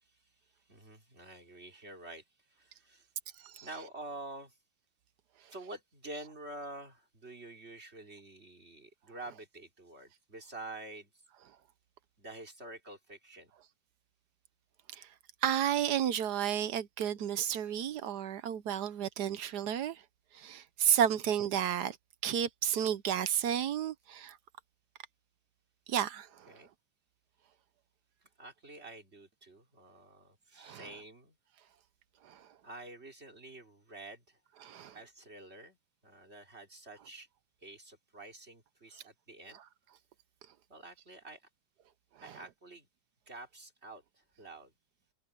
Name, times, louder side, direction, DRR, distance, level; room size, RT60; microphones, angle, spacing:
voice 1, 0.7-2.2 2.5-3.1 3.6-4.5 5.5-11.1 12.2-13.5 21.1-21.3 26.5-26.7 28.4-31.4 32.6-34.4 34.9-35.8 36.0-37.3 37.6-39.6 40.7-41.4 42.2-42.9 43.3-44.7, right 2 dB, 35° right, 3.9 m, -48 dB
voice 2, 15.4-20.0 20.3-22.0 22.2-24.4 25.9-26.6 30.6-30.9 32.2-32.5 34.6-35.0 38.9-39.0 42.2-42.4, right 9 dB, 65° right, 1.3 m, -32 dB
omnidirectional pair, 2.0 m